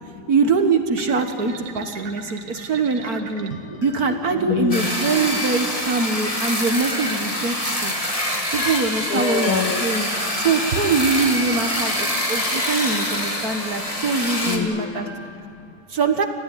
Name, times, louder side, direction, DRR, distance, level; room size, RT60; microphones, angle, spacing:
voice 1, 0.3-3.5 3.8-7.9 8.5-10.1 10.4-15.1 15.9-16.2, right 4 dB, 50° right, 6 dB, 1.2 m, -23 dB
sound 1, 1.0-11.2, right 6 dB, 80° right, 3.0 m, -40 dB
sound 2, 3.0-15.4, left 3 dB, 50° left, 3.1 m, -42 dB
voice 2, 4.5-4.9 8.0-8.4 9.1-9.8 12.1-12.2 14.4-15.7, left 9 dB, 80° left, 4 dB, 2.7 m, -27 dB
sound 3, 4.7-14.6, left 1 dB, 10° left, 2.5 m, -25 dB
30.0 x 16.0 x 9.8 m, 2.8 s
omnidirectional pair, 3.4 m